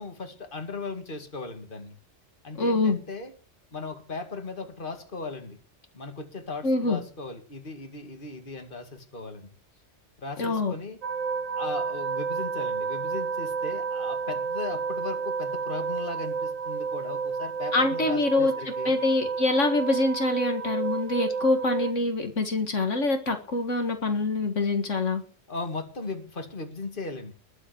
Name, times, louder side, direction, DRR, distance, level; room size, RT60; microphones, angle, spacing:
voice 1, 0.0-2.0 2.4-3.3 3.7-5.6 5.9-9.5 10.2-11.0 11.5-19.0 25.5-27.3, left 3 dB, 40° left, 6 dB, 2.4 m, -37 dB
voice 2, 2.6-3.0 6.6-7.0 10.4-10.7 17.7-18.5 18.8-25.2, left 2 dB, 70° left, 5 dB, 2.1 m, -25 dB
sound 1, 11.0-21.9, right 5 dB, 90° right, 1.5 m, -31 dB
21.0 x 7.9 x 7.0 m, 0.40 s
omnidirectional pair, 1.3 m